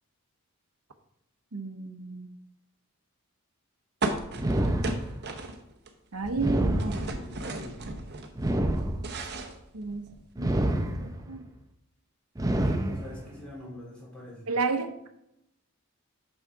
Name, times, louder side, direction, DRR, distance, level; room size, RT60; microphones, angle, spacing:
voice 1, 1.5-2.3 6.1-7.0 9.7-10.1 10.4-11.5 14.5-15.1, right 4 dB, 80° right, 7 dB, 0.8 m, -32 dB
sound 1, 4.0-5.9 6.2-8.3 8.7-10.3, right 2 dB, 50° right, 0.9 m, -35 dB
sound 2, 4.4-5.4 6.3-7.4 8.3-9.4 10.4-11.4 12.3-13.4, right 1 dB, 15° right, 0.5 m, -28 dB
voice 2, 6.9-7.8 12.6-14.5, left 1 dB, 5° left, -5 dB, 3.0 m, -44 dB
6.4 x 6.3 x 4.7 m, 0.82 s
head